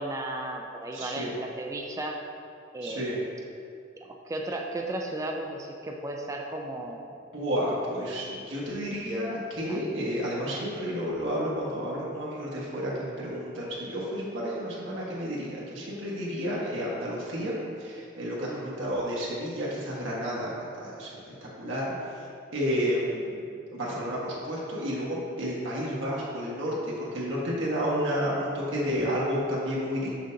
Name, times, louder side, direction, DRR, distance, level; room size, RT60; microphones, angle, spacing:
voice 1, 0.0-2.2 2.7-3.2 4.0-7.0 9.7-9.9 18.5-18.6, right 1 dB, 15° right, 1 dB, 0.4 m, -35 dB
voice 2, 0.9-1.3 2.8-3.2 7.3-17.5 17.8-21.1 21.4-22.3 22.5-23.4 23.7-30.1, equal, 70° right, -6 dB, 1.3 m, -31 dB
6.4 x 6.3 x 2.7 m, 2.5 s
head